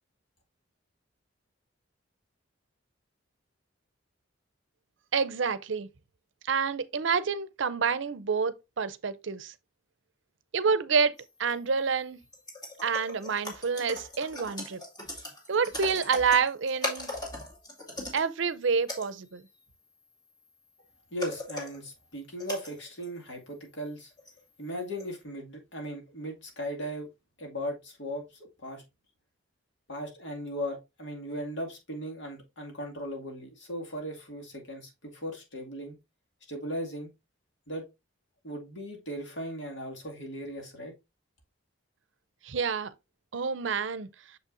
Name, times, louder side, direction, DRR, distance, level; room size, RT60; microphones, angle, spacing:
voice 1, 5.1-5.9 6.5-9.5 10.5-12.2 12.8-14.8 15.5-17.1 18.1-19.4 42.4-42.9 43.3-44.1, right 5 dB, 70° right, 0.6 m, -28 dB
sound 1, 11.2-11.3 11.5-11.6 12.3-18.3 18.6-18.7 18.9-19.6 20.8-20.9 21.2-21.9 22.4-23.2 24.0-24.6 24.9-25.1, left 2 dB, 20° left, 2.2 m, -39 dB
voice 2, 21.1-24.1 24.6-27.1 27.4-28.8 29.9-36.0 36.5-37.1 37.7-37.9 38.4-40.9, equal, 65° left, 2.2 m, -37 dB
6.6 x 5.5 x 2.6 m
head